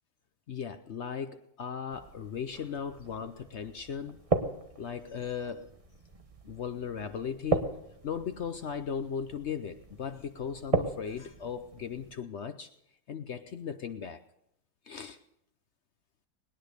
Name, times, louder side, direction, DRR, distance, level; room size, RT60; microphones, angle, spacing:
voice 1, 0.5-4.2 4.8-5.7 6.4-7.8 8.0-12.7 13.1-14.2 14.8-15.2, left 7 dB, 60° left, 9 dB, 0.7 m, -37 dB
sound 1, 1.9-12.2, right 3 dB, 25° right, 0.9 m, -37 dB
20.0 x 10.0 x 6.5 m, 0.80 s
omnidirectional pair, 1.9 m